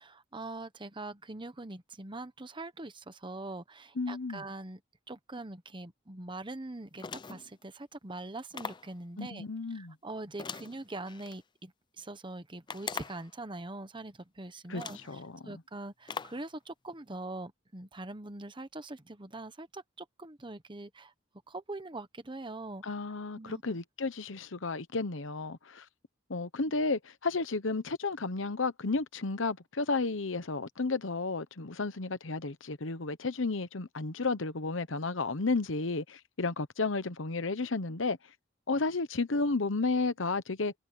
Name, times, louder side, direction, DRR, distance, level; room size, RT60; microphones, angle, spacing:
voice 1, 0.0-4.8 5.1-21.1 21.5-22.8 23.4-23.8, right 2 dB, 25° right, 1.1 m, -43 dB
voice 2, 4.0-4.4 9.2-9.9 14.7-14.8 15.1-15.5 22.8-25.8 26.3-38.2 38.7-40.7, left 3 dB, 70° left, 1.0 m, -32 dB
sound 1, 7.0-7.5 8.5-8.9 10.4-11.4 12.7-13.3 14.2-14.3 14.8-15.1 16.1-16.5, left 5 dB, 25° left, 0.4 m, -41 dB
head